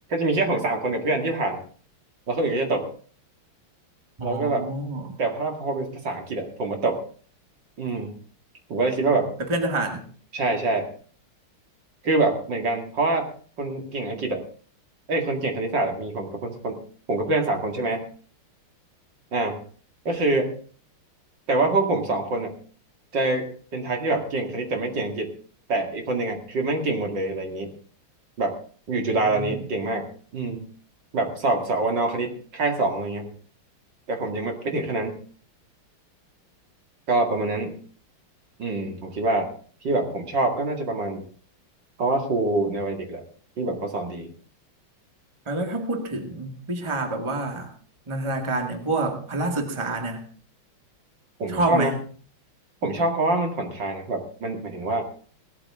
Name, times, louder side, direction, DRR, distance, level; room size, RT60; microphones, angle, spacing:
voice 1, 0.1-1.6 2.3-2.9 4.2-4.7 5.2-7.0 7.8-8.1 8.7-9.3 10.3-10.9 12.0-13.3 13.6-14.4 15.1-16.8 17.1-18.1 19.3-19.6 20.0-20.5 21.5-22.5 23.1-25.3 25.7-27.7 28.4-28.6 28.9-30.1 30.3-30.7 31.1-33.3 34.1-35.2 37.1-37.8 38.6-39.5 39.8-41.2 42.0-43.2 43.6-44.3 51.4-51.9 52.8-55.0, right 2 dB, 55° right, 3 dB, 2.8 m, -25 dB
voice 2, 4.2-5.2 9.5-10.0 28.9-29.5 45.4-47.7 48.1-50.2 51.5-51.9, right 2 dB, 15° right, 4 dB, 1.8 m, -28 dB
18.0 x 13.0 x 3.6 m, 0.43 s
omnidirectional pair, 2.4 m